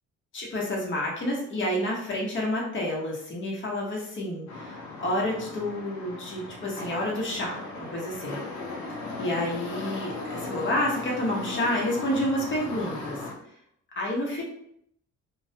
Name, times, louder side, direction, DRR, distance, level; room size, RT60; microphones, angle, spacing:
voice 1, 0.3-8.4 9.2-13.2 14.0-14.4, left 1 dB, 40° left, -2 dB, 0.9 m, -29 dB
sound 1, 4.5-13.3, left 3 dB, 65° left, 0.6 m, -37 dB
2.4 x 2.1 x 2.7 m, 0.73 s
cardioid pair, 90°, 30 cm